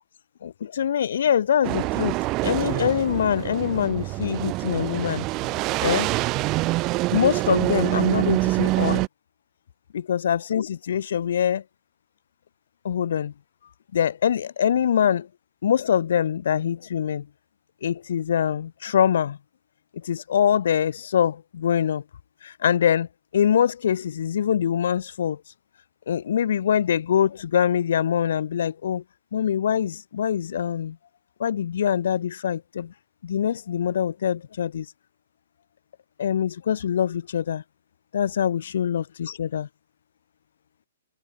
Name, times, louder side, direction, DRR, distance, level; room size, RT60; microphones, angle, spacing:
voice 1, 0.4-2.2 2.4-5.2 5.8-6.1 7.1-9.0 9.9-11.6 12.8-13.3 13.9-15.3 15.6-17.3 17.8-19.4 20.0-22.0 22.4-23.1 23.3-25.4 26.1-29.0 29.3-31.0 31.4-32.9 33.2-34.9 36.2-37.6 38.1-39.7, left 9 dB, 65° left, 0.6 m, -24 dB
sound 1, 1.6-9.1, right 21 dB, 25° right, 0.4 m, -25 dB
hypercardioid pair, 155°, 0 cm